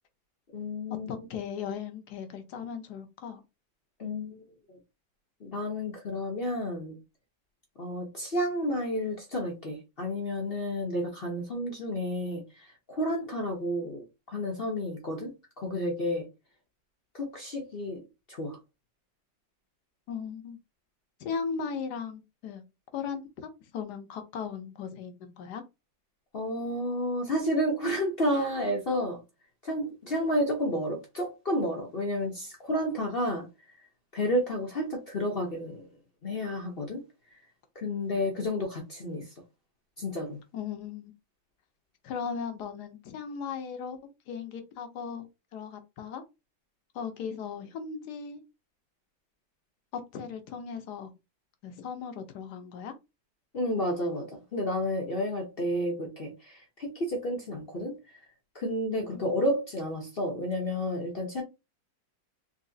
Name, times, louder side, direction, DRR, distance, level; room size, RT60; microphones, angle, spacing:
voice 1, 0.5-1.1 4.0-4.4 4.7-4.8 5.4-6.9 7.8-16.3 17.1-18.0 18.3-18.6 26.3-29.2 29.6-33.5 34.1-35.9 36.2-37.0 37.7-39.3 40.0-40.4 53.5-58.2 58.5-61.4, equal, 45° left, 0.7 m, -31 dB
voice 2, 1.1-3.4 20.1-20.6 21.2-22.6 22.9-25.6 40.5-41.1 42.0-44.0 44.3-46.2 46.9-48.4 49.9-51.1 51.6-52.9, left 6 dB, 65° left, 1.2 m, -37 dB
3.9 x 2.8 x 2.6 m
omnidirectional pair, 2.1 m